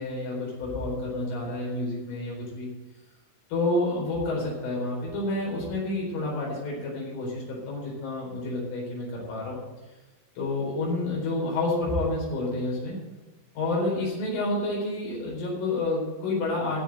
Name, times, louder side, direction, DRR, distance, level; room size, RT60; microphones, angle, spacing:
voice 1, 0.0-2.7 3.5-9.6 10.4-13.0 13.6-16.8, left 2 dB, 70° left, -4 dB, 6.9 m, -29 dB
16.5 x 6.5 x 8.0 m, 1.2 s
omnidirectional pair, 6.0 m